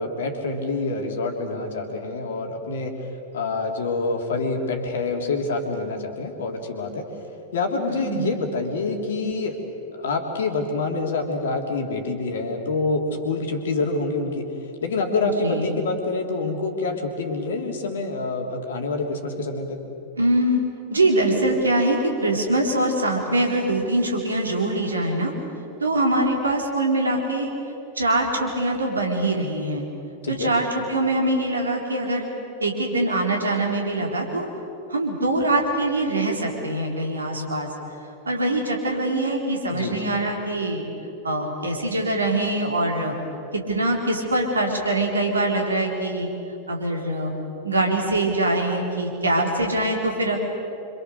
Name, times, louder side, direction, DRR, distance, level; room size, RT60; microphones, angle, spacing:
voice 1, 0.0-3.0 3.3-7.1 7.5-9.6 9.9-14.5 14.8-19.8 30.2-30.5 39.7-40.0, left 3 dB, 60° left, 3 dB, 3.3 m, -26 dB
voice 2, 7.9-8.4 15.4-15.7 20.2-20.6 20.9-25.3 25.8-27.5 28.0-29.8 30.3-32.3 32.6-34.5 34.9-37.7 38.3-40.8 41.2-43.1 43.5-46.3 46.7-47.3 47.6-50.4, right 1 dB, 75° right, 1 dB, 4.0 m, -23 dB
27.5 x 25.5 x 6.7 m, 2.9 s
figure-of-eight pair, 90°, 0 cm